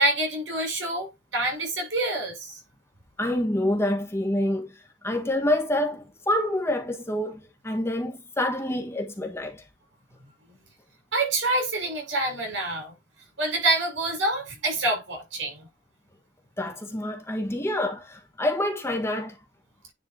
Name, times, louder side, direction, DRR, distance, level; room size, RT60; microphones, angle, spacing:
voice 1, 0.0-2.6 10.5-10.6 11.1-12.9 13.4-15.7 17.5-17.6, right 2 dB, 85° right, 5.6 m, -27 dB
voice 2, 3.2-9.6 16.6-19.4, left 1 dB, 15° left, 1.6 m, -27 dB
9.9 x 5.0 x 2.9 m
head